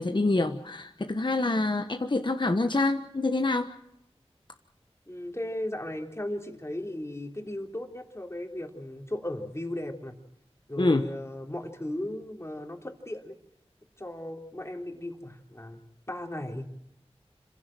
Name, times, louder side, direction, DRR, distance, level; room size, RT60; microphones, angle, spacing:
voice 1, 0.0-3.7 10.8-11.1, left 2 dB, 45° left, 6 dB, 1.1 m, -26 dB
voice 2, 5.1-10.2 10.7-13.4 14.0-15.8 16.1-16.8, left 1 dB, 25° left, 2 dB, 3.5 m, -36 dB
26.5 x 16.0 x 7.7 m, 0.80 s
wide cardioid pair, 45°, 11 cm